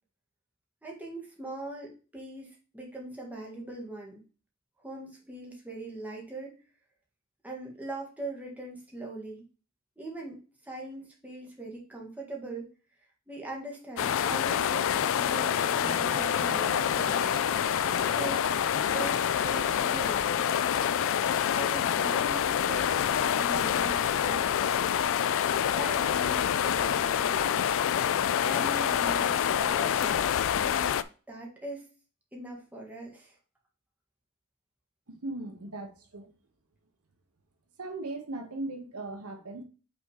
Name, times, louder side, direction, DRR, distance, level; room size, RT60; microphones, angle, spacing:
voice 1, 0.8-4.2 4.8-6.6 7.4-9.4 10.0-12.7 13.3-17.4 18.0-18.5 18.8-20.3 21.5-23.1 23.3-24.6 25.7-27.7 28.4-30.2 30.6-31.0 31.3-31.9 32.3-33.3, right 2 dB, 5° right, -2 dB, 1.6 m, -41 dB
sound 1, 14.0-31.0, left 9 dB, 60° left, 0.3 m, -27 dB
Bowed string instrument, 15.8-22.8, left 1 dB, 10° left, 0.9 m, -44 dB
voice 2, 35.1-36.3 37.8-39.6, right 2 dB, 75° right, 5 dB, 1.1 m, -38 dB
5.8 x 3.7 x 4.8 m, 0.35 s
head